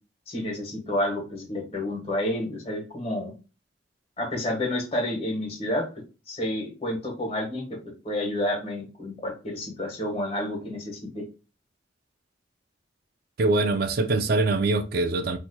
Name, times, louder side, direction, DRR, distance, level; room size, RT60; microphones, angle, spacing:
voice 1, 0.3-3.3 4.2-5.9 6.3-7.8 8.0-11.2, left 1 dB, 30° left, 1.4 m, -30 dB
voice 2, 13.4-15.4, right 2 dB, 55° right, 0.4 m, -23 dB
4.1 x 2.8 x 2.2 m
head